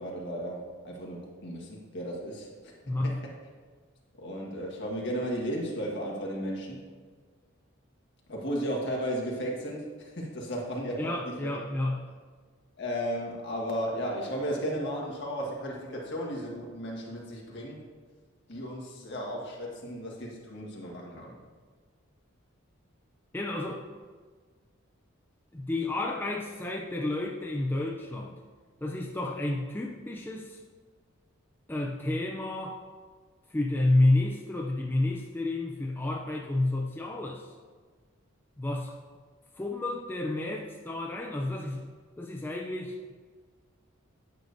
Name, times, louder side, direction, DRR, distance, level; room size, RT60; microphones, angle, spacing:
voice 1, 0.0-3.3 4.2-6.8 8.3-11.6 12.8-17.8 18.5-21.4, equal, 60° left, -2 dB, 1.5 m, -35 dB
voice 2, 2.8-3.2 11.0-12.1 23.3-23.9 25.5-28.4 28.8-30.6 31.7-32.8 33.5-37.5 38.6-38.9 39.5-43.0, left 2 dB, 10° left, -1 dB, 0.4 m, -30 dB
9.0 x 6.6 x 2.6 m, 1.5 s
head